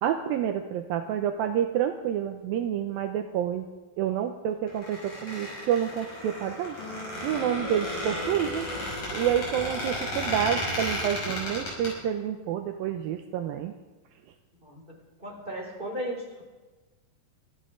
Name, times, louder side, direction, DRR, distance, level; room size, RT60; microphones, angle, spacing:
voice 1, 0.0-3.7 4.0-6.8 7.2-8.7 9.1-13.7, right 9 dB, 80° right, 5 dB, 2.1 m, -28 dB
Squeak, 4.7-11.9, left 1 dB, 45° left, 7.9 m, -33 dB
sound 1, 6.8-10.3, left 3 dB, 80° left, 4.9 m, -42 dB
voice 2, 14.6-16.4, equal, 15° right, -1 dB, 3.5 m, -36 dB
24.5 x 14.5 x 3.8 m, 1.2 s
omnidirectional pair, 5.0 m